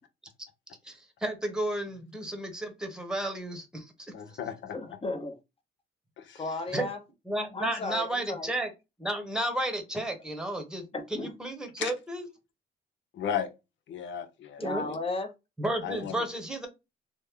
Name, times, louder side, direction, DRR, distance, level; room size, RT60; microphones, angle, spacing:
voice 1, 0.8-3.9 6.7-6.9 7.3-8.7 9.0-10.8 11.1-12.3 14.6-14.9 15.6-16.7, right 1 dB, 5° right, 1.0 m, -32 dB
voice 2, 4.1-4.8 6.2-6.4 11.8-11.9 13.1-13.5 13.9-15.0 15.8-16.2, left 8 dB, 70° left, 0.7 m, -35 dB
voice 3, 4.7-5.4 6.3-7.0 7.5-8.5 10.9-11.3 14.6-15.3, left 2 dB, 30° left, 0.8 m, -34 dB
3.1 x 2.1 x 3.5 m
cardioid pair, 90°, 20 cm